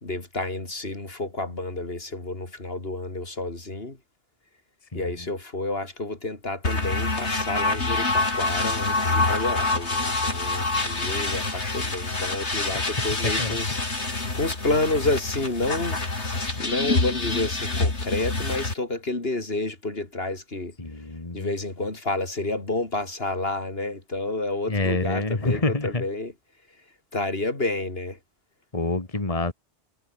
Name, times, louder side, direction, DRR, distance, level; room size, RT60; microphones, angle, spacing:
voice 1, 0.0-4.0 4.9-13.7 14.0-16.0 16.6-20.8 21.3-26.3 27.1-28.2, left 2 dB, 60° left, 3.8 m, -30 dB
sound 1, 6.6-18.7, left 3 dB, 90° left, 3.9 m, -26 dB
voice 2, 20.8-21.5 24.7-26.0 28.7-29.5, left 2 dB, 30° left, 2.4 m, -27 dB
omnidirectional pair, 1.1 m